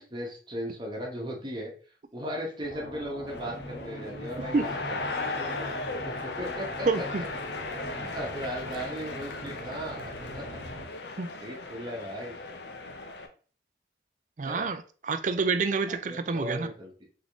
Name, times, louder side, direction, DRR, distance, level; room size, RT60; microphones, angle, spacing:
voice 1, 0.1-1.7 2.1-7.3 7.9-10.5 11.4-12.4 14.4-14.7 16.1-17.1, equal, 25° right, 1.2 m, -37 dB
sound 1, 2.6-10.8, equal, 60° left, 2.4 m, -41 dB
sound 2, 3.3-13.3, left 3 dB, 75° left, 0.7 m, -37 dB
voice 2, 4.4-4.7 6.9-7.2 11.2-11.3 14.4-16.7, right 4 dB, 45° right, 0.4 m, -28 dB
3.7 x 3.6 x 3.5 m
head